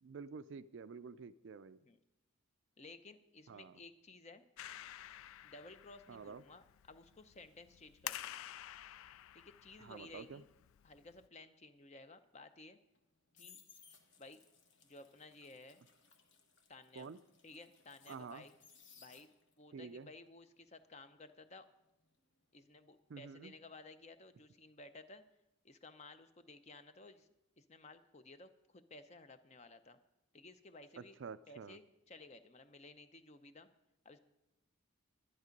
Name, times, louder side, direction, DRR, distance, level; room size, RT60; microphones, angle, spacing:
voice 1, 0.0-1.8 3.5-3.7 6.1-6.4 9.8-10.4 17.0-17.2 18.1-18.5 19.7-20.1 23.1-23.5 31.0-31.8, right 5 dB, 55° right, 15 dB, 0.4 m, -49 dB
voice 2, 2.8-4.4 5.4-8.4 9.3-10.5 10.8-12.8 13.4-13.6 14.2-14.4 14.8-15.8 16.7-17.1 17.4-18.5 19.0-19.3 19.6-21.7 22.5-25.2 25.6-27.3 27.6-30.0 30.3-31.2 31.5-33.7 34.0-34.2, left 3 dB, 30° left, 10 dB, 0.6 m, -56 dB
Clapping, 4.6-11.3, left 13 dB, 75° left, 0.3 m, -50 dB
sound 1, 12.9-19.7 20.0-22.9 23.2-23.5, left 6 dB, 55° left, 1.2 m, -64 dB
11.5 x 11.0 x 5.2 m, 0.91 s
head